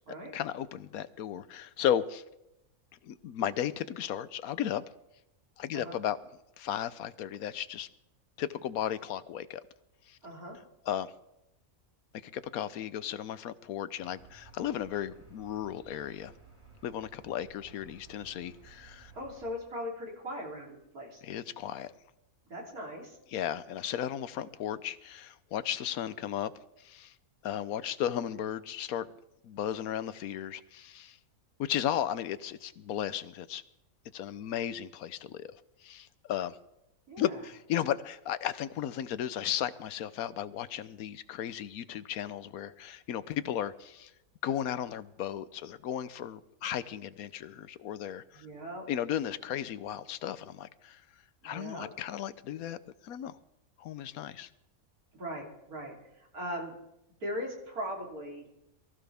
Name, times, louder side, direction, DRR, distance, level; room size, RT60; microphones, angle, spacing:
voice 1, 0.3-2.2 3.0-4.8 5.6-6.2 6.6-7.9 8.4-9.6 10.1-10.2 10.9-11.1 12.2-16.3 16.8-19.1 21.2-21.9 23.3-26.5 26.8-27.1 27.4-29.1 29.4-31.2 31.6-33.6 34.1-35.6 35.8-36.6 37.2-44.1 44.4-48.5 48.9-51.0 51.4-52.8 53.0-53.4 53.8-54.5, left 10 dB, 80° left, 15 dB, 1.2 m, -35 dB
voice 2, 10.2-10.6 19.1-21.2 22.5-23.2 37.1-37.4 48.3-48.9 51.4-51.9 55.1-56.7 57.2-58.5, equal, 90° right, -1 dB, 3.8 m, -39 dB
sound 1, 14.0-19.6, right 4 dB, 20° right, 1.8 m, -56 dB
23.0 x 14.5 x 3.5 m, 0.86 s
omnidirectional pair, 1.5 m